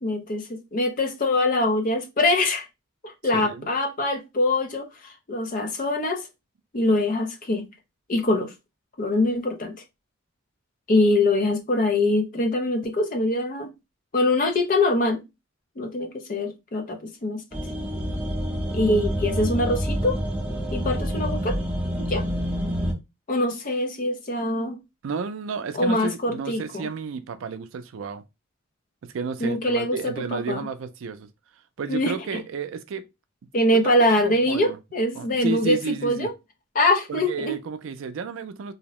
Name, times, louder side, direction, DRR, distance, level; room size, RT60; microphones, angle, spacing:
voice 1, 0.0-2.7 3.0-6.3 6.7-7.7 8.1-8.5 9.0-9.8 10.9-13.7 14.1-15.2 15.8-17.4 18.7-20.2 20.7-21.6 22.1-22.2 23.3-24.8 25.7-26.9 29.4-30.7 31.9-32.4 33.5-36.3 36.7-37.6, left 2 dB, 45° left, 0.5 m, -23 dB
voice 2, 3.3-3.7 25.0-28.2 29.1-31.3 31.8-33.1 33.8-33.9 34.2-34.8 35.2-36.3 37.1-38.7, right 5 dB, 80° right, 0.4 m, -32 dB
sound 1, 17.5-22.9, equal, 5° right, 0.7 m, -27 dB
2.7 x 2.0 x 2.9 m
head